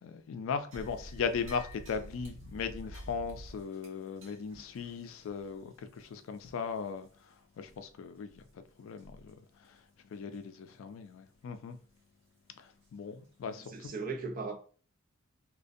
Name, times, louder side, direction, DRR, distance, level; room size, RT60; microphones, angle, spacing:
voice 1, 0.0-7.1 7.6-8.4 8.8-9.3 10.1-11.8 12.6-13.9, left 5 dB, 75° left, 0.3 m, -38 dB
sound 1, 0.7-7.3 7.6-7.8 8.3-8.5 9.0-9.3 9.6-9.8 10.3-10.4 12.8-12.9 13.5-13.6, equal, 70° right, 0.9 m, -50 dB
voice 2, 13.6-14.6, right 4 dB, 45° right, 0.5 m, -38 dB
2.4 x 2.1 x 2.5 m
head